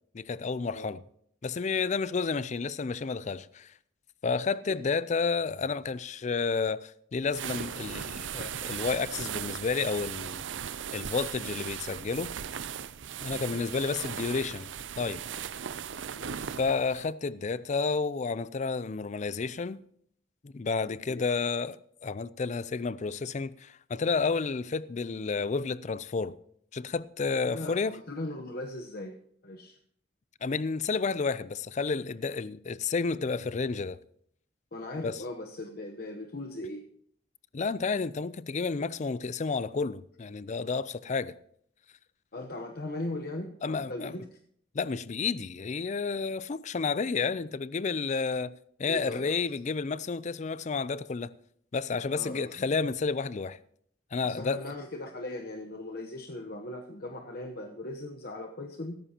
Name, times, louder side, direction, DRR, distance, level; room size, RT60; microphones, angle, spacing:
voice 1, 0.1-1.0 1.4-3.7 4.2-10.4 10.9-12.3 13.2-14.7 15.0-15.2 16.6-19.8 20.4-26.4 26.7-28.0 30.4-34.0 35.0-35.2 37.5-41.4 43.6-44.1 44.7-48.5 48.8-51.3 51.7-53.6 54.1-54.7, left 4 dB, 40° left, 0.4 m, -31 dB
sound 1, 7.3-17.1, right 8 dB, 80° right, 0.6 m, -38 dB
voice 2, 13.3-13.6 16.1-16.6 21.1-21.2 27.3-29.2 29.4-29.8 34.7-36.9 42.3-44.4 48.8-49.4 52.1-52.6 54.2-59.0, left 1 dB, 55° left, 1.0 m, -39 dB
16.0 x 14.0 x 2.9 m
head